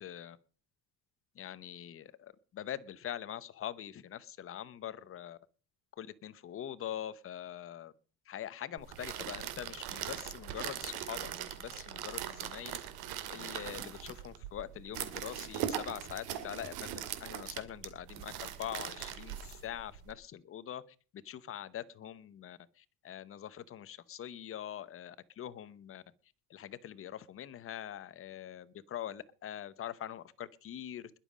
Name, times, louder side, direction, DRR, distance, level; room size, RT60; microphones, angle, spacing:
voice 1, 0.0-0.4 1.3-5.4 6.0-7.9 8.3-12.8 13.3-20.8 21.2-26.0 26.5-31.2, left 10 dB, 35° left, 16 dB, 0.9 m, -43 dB
sound 1, 8.8-20.1, right 11 dB, 80° right, 2.4 m, -41 dB
21.0 x 7.5 x 5.1 m, 0.38 s
cardioid pair, 160°, 37 cm